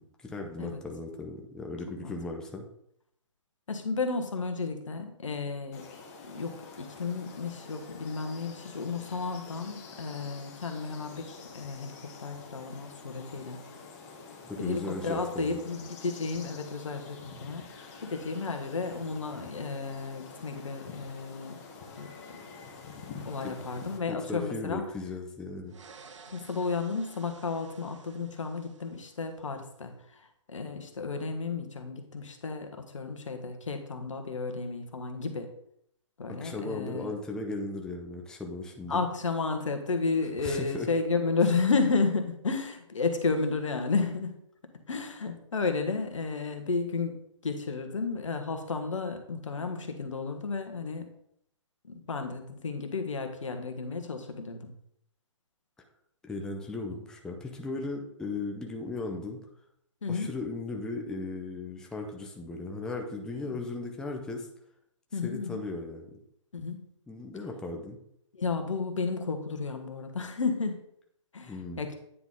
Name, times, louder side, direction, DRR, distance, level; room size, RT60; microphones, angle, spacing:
voice 1, 0.0-2.7 14.4-15.6 24.1-25.7 36.3-39.0 40.4-40.9 56.3-59.4 60.1-64.5 65.2-66.2 67.1-68.0 71.4-71.9, left 3 dB, 5° left, 2 dB, 0.5 m, -37 dB
voice 2, 3.7-5.9 6.2-13.6 14.6-17.6 18.0-21.6 21.9-22.1 23.2-24.8 26.3-35.5 36.2-37.1 38.9-44.4 44.9-47.2 47.4-51.1 51.8-54.7 60.0-60.3 63.5-63.7 65.1-65.6 66.5-66.9 68.3-70.8 71.3-71.9, left 4 dB, 80° left, 6 dB, 1.2 m, -32 dB
sound 1, 5.7-24.0, left 4 dB, 30° left, 1.2 m, -47 dB
sound 2, 25.7-29.6, right 5 dB, 70° right, 0.9 m, -53 dB
9.3 x 3.9 x 3.7 m, 0.72 s
hypercardioid pair, 140°, 16 cm